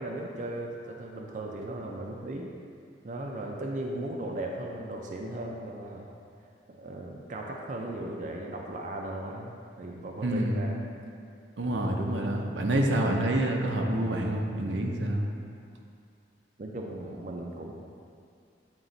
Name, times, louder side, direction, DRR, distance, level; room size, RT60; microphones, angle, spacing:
voice 1, 0.0-2.5 3.0-6.1 6.7-10.8 11.6-11.8 16.6-17.7, right 1 dB, 45° right, 0 dB, 0.5 m, -37 dB
voice 2, 10.2-10.7 11.6-15.3, right 1 dB, 85° right, 1 dB, 0.7 m, -27 dB
8.8 x 3.0 x 4.0 m, 2.4 s
head